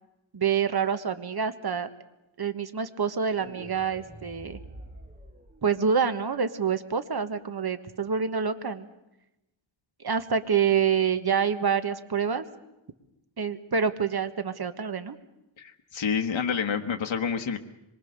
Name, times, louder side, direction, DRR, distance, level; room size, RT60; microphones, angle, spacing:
voice 1, 0.3-1.9 2.4-4.6 5.6-8.9 10.0-12.4 13.4-15.2, right 6 dB, 50° right, 10 dB, 1.4 m, -27 dB
sound 1, 3.2-6.2, right 2 dB, 15° right, 3.0 m, -47 dB
voice 2, 15.6-17.6, left 6 dB, 70° left, 5 dB, 1.4 m, -28 dB
25.0 x 23.0 x 6.7 m, 0.93 s
wide cardioid pair, 110°, 49 cm